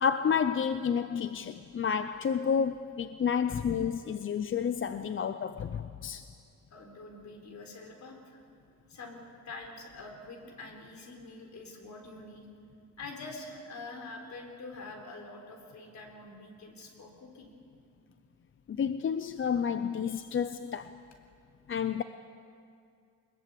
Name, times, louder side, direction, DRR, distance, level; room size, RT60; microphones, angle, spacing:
voice 1, 0.0-6.3 18.7-21.0 21.7-22.0, left 7 dB, 40° left, 0.6 m, -30 dB
voice 2, 6.7-8.4 8.9-12.5 13.0-17.5 20.0-20.4, left 3 dB, 65° left, 4.1 m, -46 dB
23.0 x 21.5 x 8.5 m
wide cardioid pair, 165°, 31 cm